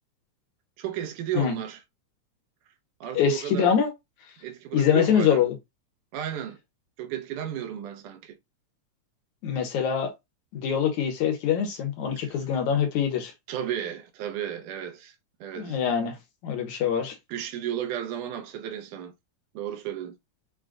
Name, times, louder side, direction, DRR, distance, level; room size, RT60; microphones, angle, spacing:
voice 1, 0.8-1.8 3.0-3.7 4.4-5.4 6.1-6.6 7.0-8.4 12.2-12.5 13.5-15.2 15.4-15.8 17.3-19.1 19.5-20.2, right 10 dB, 80° right, 2.2 m, -33 dB
voice 2, 3.1-3.9 4.7-5.6 9.4-10.1 10.5-13.3 15.6-16.2 16.4-17.2, left 8 dB, 70° left, 2.2 m, -24 dB
5.8 x 2.2 x 3.7 m
omnidirectional pair, 3.7 m